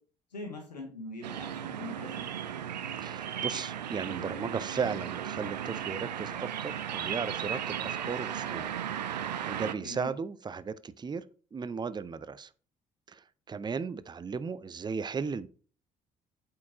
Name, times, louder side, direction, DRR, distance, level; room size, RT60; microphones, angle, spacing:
voice 1, 0.3-2.2 9.8-10.1, left 2 dB, 90° left, 1.6 m, -42 dB
sound 1, 1.2-9.7, right 9 dB, 85° right, 0.4 m, -36 dB
voice 2, 3.0-8.7 9.5-11.2 11.5-12.5 13.1-15.5, right 5 dB, 20° right, 0.5 m, -36 dB
8.3 x 4.5 x 3.7 m
figure-of-eight pair, 45°, 21 cm